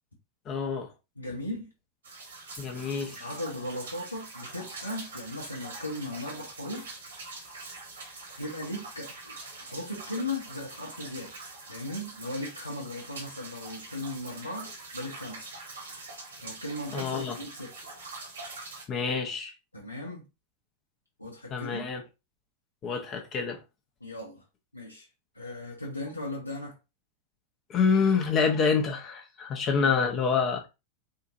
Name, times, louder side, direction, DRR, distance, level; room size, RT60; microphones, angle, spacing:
voice 1, 0.5-0.9 2.6-3.2 16.9-17.4 18.9-19.5 21.5-22.0 22.8-23.6 27.7-30.7, left 5 dB, 30° left, 0.7 m, -27 dB
voice 2, 1.2-1.7 3.2-6.9 8.4-11.4 11.7-15.5 16.4-17.7 19.7-20.2 21.2-21.8 24.0-24.4 24.7-25.1 25.3-26.8 29.8-29.9, left 1 dB, 85° left, 0.7 m, -37 dB
sound 1, 2.0-18.8, right 3 dB, 65° right, 1.2 m, -44 dB
3.6 x 2.4 x 2.8 m
figure-of-eight pair, 90°, 0 cm